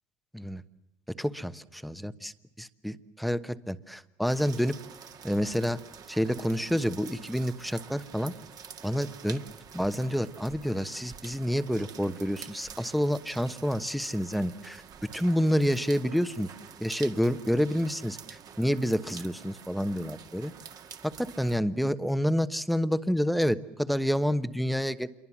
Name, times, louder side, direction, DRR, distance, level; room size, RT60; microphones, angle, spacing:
voice 1, 1.2-2.3 2.6-4.8 5.2-5.8 6.1-8.3 8.8-9.4 9.7-16.5 16.8-18.2 18.6-20.5 21.0-25.1, equal, ahead, 13 dB, 1.1 m, -28 dB
sound 1, 4.2-21.6, right 7 dB, 45° right, 2.0 m, -48 dB
27.0 x 23.5 x 7.3 m, 0.96 s
supercardioid pair, 110°, 9 cm